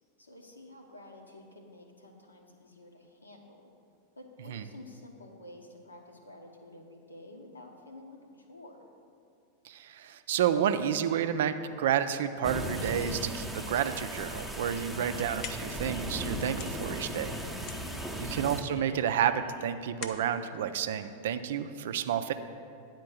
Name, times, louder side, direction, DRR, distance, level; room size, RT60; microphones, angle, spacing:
voice 1, 0.2-3.7 4.1-8.9 14.8-15.2 17.9-18.1, left 1 dB, 80° left, 2 dB, 0.9 m, -50 dB
voice 2, 9.6-17.3 18.2-22.3, right 9 dB, 55° right, 10 dB, 0.4 m, -30 dB
sound 1, 12.4-18.6, equal, ahead, 0.7 m, -37 dB
sound 2, 12.8-19.9, left 3 dB, 60° left, 1.1 m, -53 dB
sound 3, 15.0-21.8, left 7 dB, 40° left, 0.5 m, -48 dB
9.3 x 4.4 x 6.2 m, 2.5 s
figure-of-eight pair, 90°, 0 cm